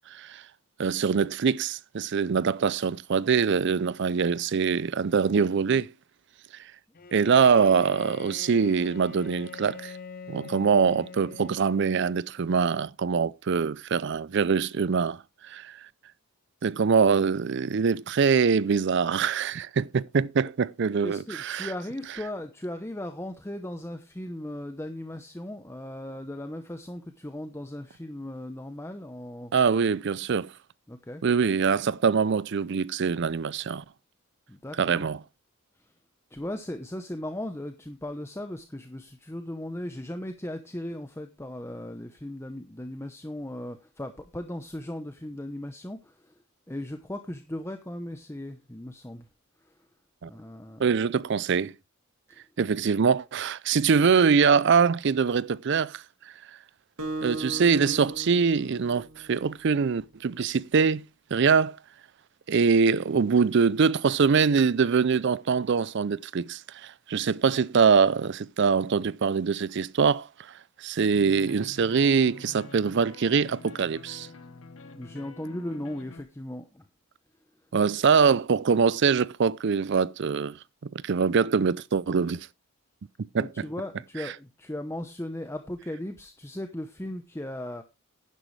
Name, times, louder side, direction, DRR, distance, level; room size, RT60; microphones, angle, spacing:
voice 1, 0.1-0.4 0.8-5.9 7.1-9.9 10.3-15.2 15.4-15.8 16.6-21.7 29.5-30.5 31.2-33.8 34.8-35.2 50.2-50.3 50.8-51.7 52.6-56.0 57.2-61.0 61.3-61.8 62.5-70.3 70.8-74.3 77.7-80.6 81.0-82.5 83.2-83.5, right 5 dB, 55° right, 0.4 m, -23 dB
Bowed string instrument, 6.9-12.4, left 5 dB, 45° left, 0.7 m, -44 dB
voice 2, 21.0-29.5 30.9-31.2 34.5-35.1 36.3-46.3 46.7-49.3 50.3-50.9 52.3-52.4 74.9-76.9 83.4-87.8, left 1 dB, 10° left, 0.8 m, -37 dB
Acoustic guitar, 57.0-59.8, right 2 dB, 80° right, 2.5 m, -37 dB
sound 1, 71.1-76.2, left 2 dB, 75° left, 1.5 m, -46 dB
11.0 x 10.5 x 3.2 m
head